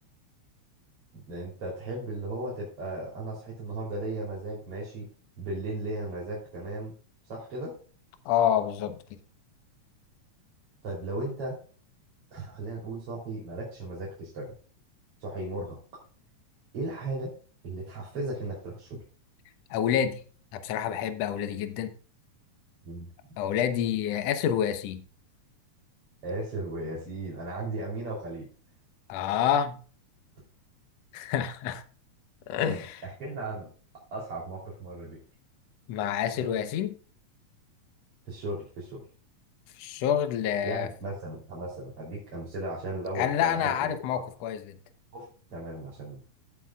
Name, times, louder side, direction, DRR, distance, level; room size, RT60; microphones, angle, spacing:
voice 1, 1.1-5.1 5.4-6.9 7.3-7.8 10.8-11.6 12.3-14.5 15.2-15.8 16.7-17.4 17.6-19.0 22.8-23.1 26.2-28.5 32.7-32.8 33.2-33.7 34.1-35.2 36.4-36.5 38.3-39.0 40.6-43.9 45.1-46.3, right 2 dB, 50° right, 4.2 m, -36 dB
voice 2, 8.3-9.0 19.7-20.2 20.5-21.9 23.4-25.0 29.1-29.8 31.1-31.8 32.5-33.0 35.9-37.0 39.8-40.9 43.2-44.8, left 9 dB, 65° left, 2.0 m, -28 dB
16.0 x 7.7 x 2.4 m
omnidirectional pair, 3.4 m